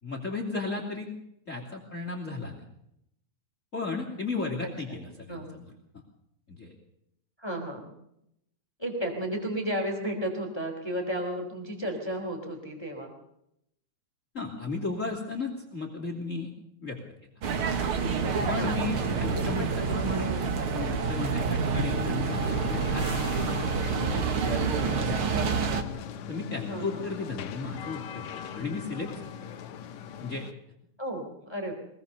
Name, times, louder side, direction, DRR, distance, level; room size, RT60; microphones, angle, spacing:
voice 1, 0.0-1.1 1.5-2.6 3.7-5.7 6.5-6.7 14.3-16.5 16.8-17.0 18.5-20.3 20.7-25.3 26.3-29.3 30.2-30.4, left 3 dB, 25° left, 2 dB, 3.0 m, -35 dB
voice 2, 7.4-7.9 8.8-13.1 18.5-18.9 19.2-19.7 20.3-20.5 26.7-27.0 31.0-31.7, right 1 dB, 10° left, 2 dB, 3.4 m, -33 dB
sound 1, 17.4-25.8, right 5 dB, 50° right, 2.2 m, -28 dB
sound 2, 22.3-30.5, left 8 dB, 75° left, 2.4 m, -40 dB
23.5 x 19.0 x 6.8 m, 0.79 s
omnidirectional pair, 3.3 m